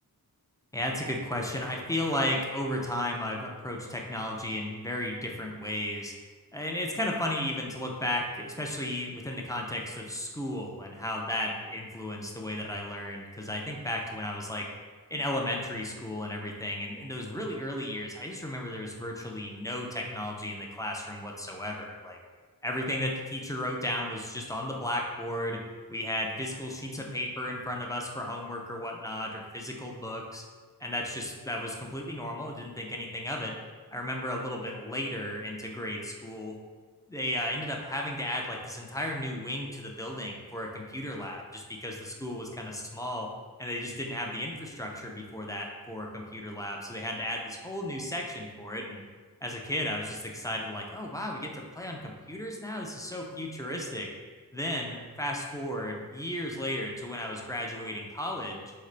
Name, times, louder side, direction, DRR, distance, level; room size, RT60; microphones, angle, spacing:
voice 1, 0.7-6.1 6.5-14.7 15.1-22.2 22.6-25.6 25.9-30.4 30.8-33.5 33.9-36.5 37.1-43.3 43.6-49.0 49.4-54.1 54.5-58.7, left 1 dB, 10° left, 0 dB, 0.4 m, -34 dB
3.8 x 3.6 x 3.2 m, 1.4 s
wide cardioid pair, 120°, 38 cm